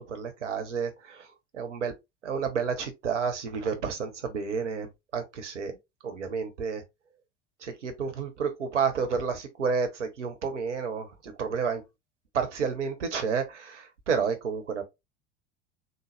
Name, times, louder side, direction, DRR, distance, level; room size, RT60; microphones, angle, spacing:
voice 1, 0.1-1.3 1.5-1.9 2.2-5.8 6.0-6.8 7.6-11.8 12.3-14.8, right 6 dB, 85° right, 1.0 m, -30 dB
3.8 x 2.1 x 3.3 m
hypercardioid pair, 80°, 35 cm